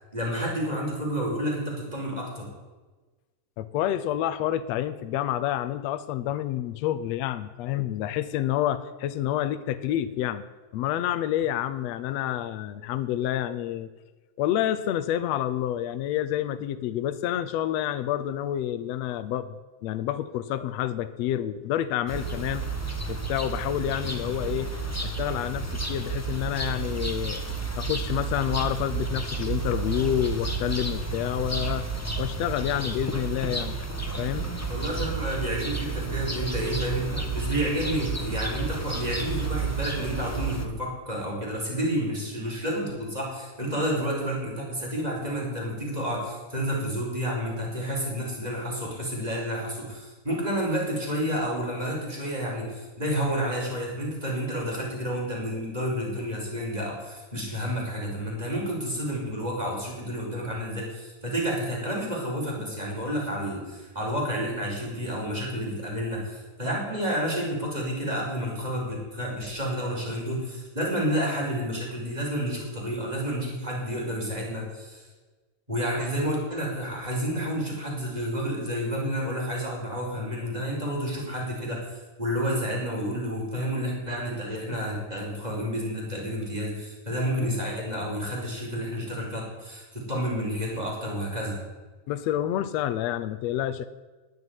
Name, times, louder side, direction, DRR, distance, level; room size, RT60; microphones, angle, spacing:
voice 1, 0.1-2.5 34.7-75.1 75.7-91.6, equal, 10° right, -2 dB, 5.2 m, -30 dB
voice 2, 3.6-10.4 10.7-13.9 14.4-19.5 19.8-22.7 23.1-24.7 25.0-27.4 27.7-31.9 32.2-33.7 34.2-34.5 92.1-93.9, left 12 dB, 70° left, 11 dB, 1.9 m, -28 dB
sound 1, 22.1-40.7, right 4 dB, 15° left, 0.5 m, -31 dB
19.0 x 7.7 x 9.6 m, 1.3 s
omnidirectional pair, 3.3 m